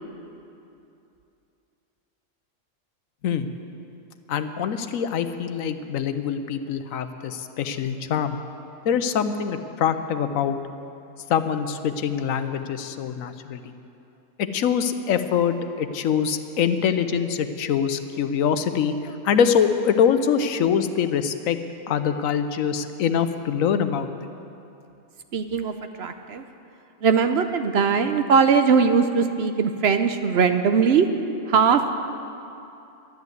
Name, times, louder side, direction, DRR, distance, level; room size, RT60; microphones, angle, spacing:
voice 1, 4.3-8.4 8.8-10.6 11.3-13.7 14.4-21.6 21.9-24.1, left 7 dB, 85° left, 10 dB, 1.1 m, -24 dB
voice 2, 25.3-26.4 27.0-31.1 31.5-31.9, right 6 dB, 60° right, 8 dB, 0.8 m, -20 dB
12.0 x 11.0 x 7.8 m, 2.7 s
omnidirectional pair, 1.4 m